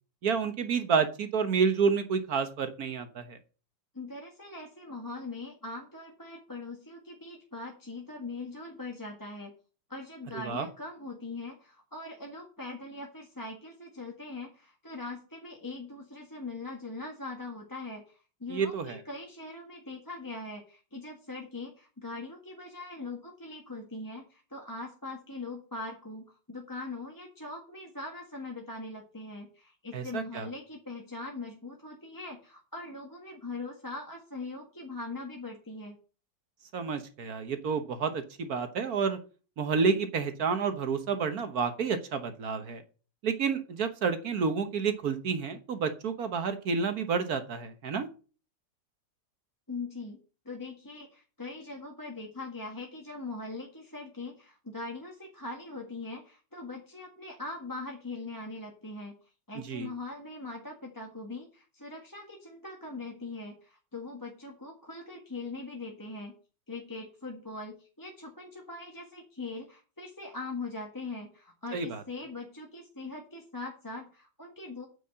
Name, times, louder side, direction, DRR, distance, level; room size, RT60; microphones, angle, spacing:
voice 1, 0.2-3.4 10.3-10.7 18.5-19.0 29.9-30.5 36.7-39.2 39.6-42.8 43.2-48.1 59.5-59.9 71.7-72.0, right 5 dB, 55° right, 9 dB, 1.5 m, -29 dB
voice 2, 3.9-9.5 9.9-35.9 49.7-50.2 50.4-59.1 59.5-66.3 66.7-74.9, left 3 dB, 10° left, -1 dB, 1.6 m, -41 dB
9.2 x 5.6 x 7.5 m, 0.37 s
omnidirectional pair, 2.0 m